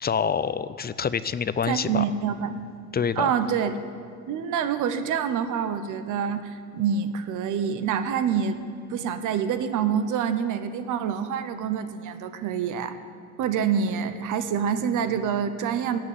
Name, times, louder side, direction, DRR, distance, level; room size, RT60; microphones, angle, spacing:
voice 1, 0.0-2.0 2.9-3.3, left 7 dB, 30° left, 15 dB, 0.5 m, -26 dB
voice 2, 1.7-2.6 3.2-3.8 4.3-8.6 8.9-13.0 13.4-16.0, right 7 dB, 85° right, 10 dB, 0.9 m, -26 dB
17.0 x 6.1 x 9.5 m, 2.3 s
cardioid pair, 90°, 30 cm